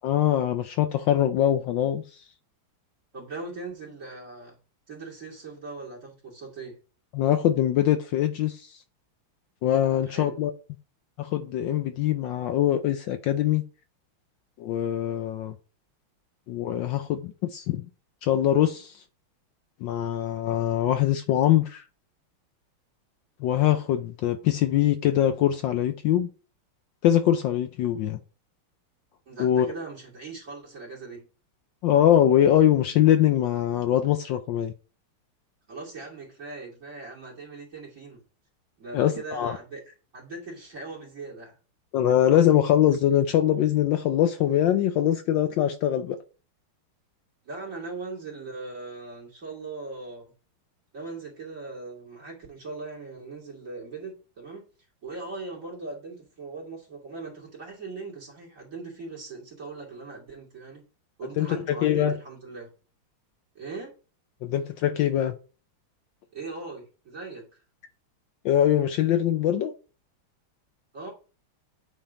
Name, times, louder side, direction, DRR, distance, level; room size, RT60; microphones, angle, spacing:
voice 1, 0.0-2.0 7.1-8.8 9.6-10.5 11.2-13.6 14.6-15.5 16.5-17.8 18.2-18.9 19.8-21.8 23.4-26.3 27.0-28.2 29.4-29.7 31.8-34.7 38.9-39.6 41.9-46.2 61.4-62.1 64.4-65.3 68.4-69.7, left 11 dB, 75° left, 1.2 m, -23 dB
voice 2, 3.1-4.6 4.9-6.8 10.1-10.4 29.3-31.2 35.7-38.2 38.8-39.8 40.1-41.5 47.4-50.3 50.9-54.7 55.0-60.8 61.2-62.7 63.5-63.9 66.3-67.5 70.9-71.1, right 3 dB, 40° right, 3.0 m, -39 dB
8.7 x 3.7 x 3.8 m
omnidirectional pair, 2.3 m